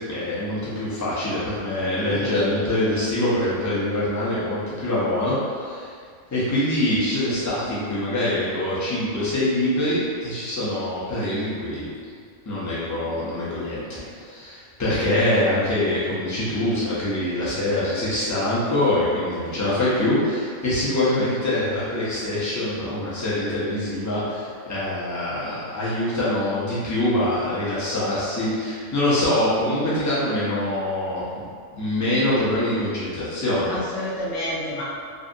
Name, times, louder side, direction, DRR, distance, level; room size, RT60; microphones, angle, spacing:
voice 1, 0.0-5.9 6.3-11.9 12.5-31.4 31.7-33.8, left 1 dB, 30° left, -10 dB, 0.3 m, -24 dB
voice 2, 2.1-2.4 14.0-14.1 33.7-34.8, left 1 dB, 65° left, -7 dB, 0.8 m, -30 dB
2.6 x 2.5 x 2.5 m, 2.1 s
omnidirectional pair, 1.5 m